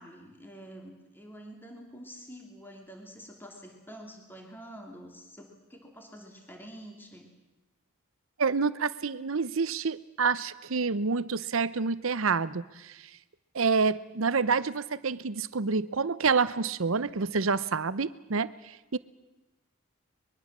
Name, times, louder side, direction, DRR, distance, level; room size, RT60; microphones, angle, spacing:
voice 1, 0.0-7.3, equal, 10° left, 2 dB, 2.9 m, -47 dB
voice 2, 8.4-13.0 13.5-18.5 18.9-19.0, right 4 dB, 70° right, 16 dB, 0.8 m, -28 dB
24.0 x 22.0 x 7.4 m, 1.1 s
head